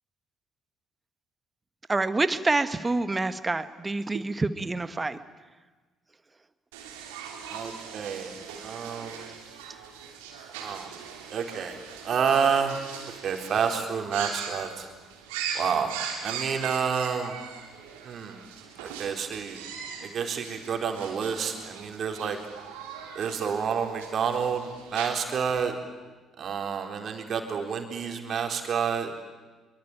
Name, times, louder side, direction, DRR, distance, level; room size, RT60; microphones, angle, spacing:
voice 1, 1.9-5.2, right 3 dB, 25° right, 12 dB, 1.7 m, -27 dB
sound 1, 6.7-25.5, right 7 dB, 75° right, 3.2 m, -40 dB
voice 2, 7.5-8.3 8.6-9.2 10.6-10.9 11.3-11.7 12.0-12.7 13.2-14.8 15.5-15.9 16.2-17.4 18.0-18.4 18.8-19.6 20.0-22.4 23.2-25.7 26.4-29.1, right 6 dB, 50° right, 4 dB, 4.1 m, -29 dB
25.5 x 23.0 x 9.2 m, 1.3 s
hypercardioid pair, 50°, 0 cm